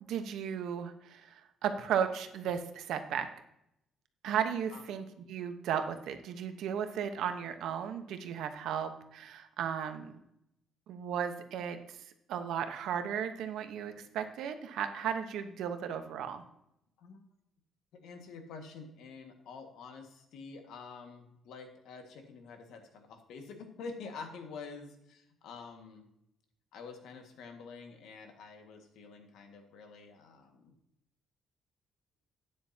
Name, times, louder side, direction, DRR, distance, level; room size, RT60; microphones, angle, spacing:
voice 1, 0.1-3.3 4.2-10.2 10.9-12.0 12.3-16.4, right 8 dB, 75° right, 8 dB, 1.1 m, -35 dB
voice 2, 17.9-26.1 26.7-30.7, left 4 dB, 75° left, 4 dB, 1.8 m, -48 dB
12.0 x 9.4 x 2.9 m, 0.79 s
cardioid pair, 165°, 0 cm